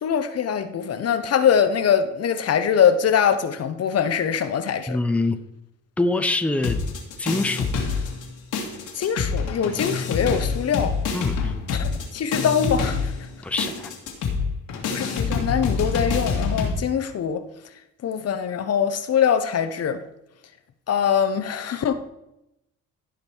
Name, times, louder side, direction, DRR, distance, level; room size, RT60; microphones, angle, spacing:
voice 1, 0.0-5.0 9.0-10.9 11.7-13.0 14.9-17.4 18.0-20.0 20.9-21.9, left 8 dB, 55° left, 0.9 m, -23 dB
voice 2, 4.9-5.4 6.0-6.8 7.2-7.7 11.1-11.5 13.4-13.9, left 2 dB, 5° left, 0.7 m, -24 dB
sound 1, 6.6-8.3 8.5-16.7, left 5 dB, 85° left, 2.2 m, -26 dB
15.0 x 5.2 x 4.5 m
cardioid pair, 90°, 30 cm